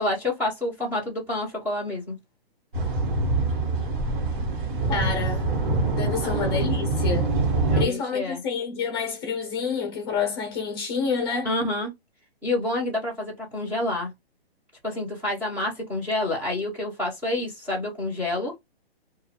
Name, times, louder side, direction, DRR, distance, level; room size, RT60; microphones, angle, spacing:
voice 1, 0.0-2.2 6.2-6.5 7.7-8.4 11.4-11.9 12.4-14.1 14.8-18.5, left 2 dB, 5° right, 0.7 m, -28 dB
sound 1, 2.7-7.9, right 3 dB, 55° right, 1.2 m, -24 dB
voice 2, 4.9-5.5 5.9-7.3 7.7-11.5, left 5 dB, 25° left, 0.7 m, -28 dB
2.6 x 2.3 x 2.8 m
hypercardioid pair, 160°, 31 cm